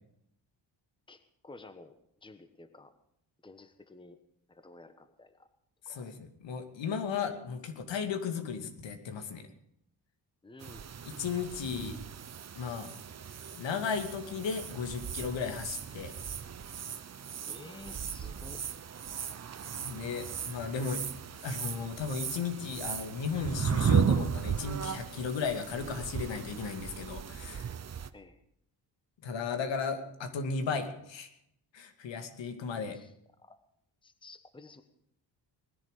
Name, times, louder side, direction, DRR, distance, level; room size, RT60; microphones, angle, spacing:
voice 1, 1.1-1.9 2.2-2.9 3.4-4.2 4.5-5.5 5.8-6.1 10.4-10.9 17.4-18.6 28.1-28.4 32.9-33.1 33.4-33.6 34.0-34.8, left 2 dB, 10° left, 9 dB, 1.2 m, -52 dB
voice 2, 5.9-9.4 11.0-12.0 12.6-12.9 13.5-16.1 19.8-21.1 21.4-27.6 29.2-31.3 31.7-33.0, left 5 dB, 75° left, 6 dB, 2.5 m, -35 dB
sound 1, 10.6-28.1, right 7 dB, 35° right, 0.9 m, -35 dB
19.5 x 10.5 x 6.7 m, 0.74 s
cardioid pair, 110°, 45 cm